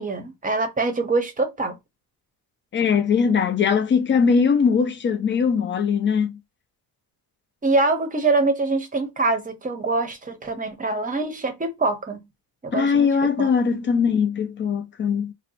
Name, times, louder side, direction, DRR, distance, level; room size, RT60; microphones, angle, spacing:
voice 1, 0.0-1.8 7.6-12.3 12.6-13.5, right 3 dB, 20° right, 0.7 m, -24 dB
voice 2, 2.7-6.3 12.7-15.3, left 6 dB, 30° left, 0.4 m, -20 dB
2.7 x 2.1 x 4.0 m
cardioid pair, 145°, 39 cm